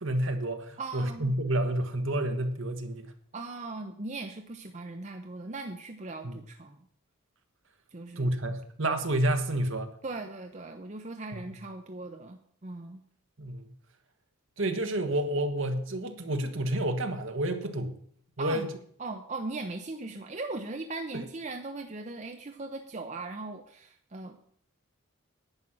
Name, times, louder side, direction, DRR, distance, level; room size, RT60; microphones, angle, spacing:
voice 1, 0.0-3.1 6.2-6.4 8.2-9.9 11.3-11.5 13.4-13.6 14.6-18.0 18.4-18.7, right 1 dB, 55° right, 1.4 m, -29 dB
voice 2, 0.8-1.4 3.3-6.8 7.9-8.3 10.0-13.0 18.4-18.7 19.0-24.5, right 3 dB, 30° right, 0.7 m, -39 dB
10.5 x 9.1 x 6.1 m
head